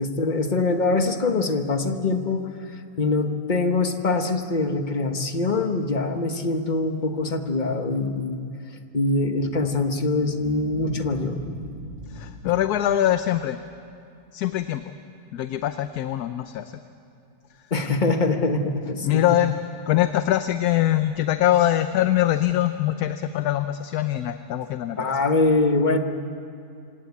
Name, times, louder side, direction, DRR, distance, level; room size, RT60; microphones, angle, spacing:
voice 1, 0.0-2.4 3.0-8.4 8.9-11.4 17.7-19.4 25.0-26.0, left 3 dB, 30° left, 6 dB, 1.3 m, -23 dB
sound 1, 9.1-13.5, equal, 40° right, 6.1 m, -38 dB
voice 2, 12.1-13.6 14.3-14.8 15.3-16.8 19.0-19.6 19.9-25.1, left 12 dB, 70° left, 10 dB, 1.2 m, -23 dB
26.5 x 17.5 x 8.5 m, 2.5 s
omnidirectional pair, 1.8 m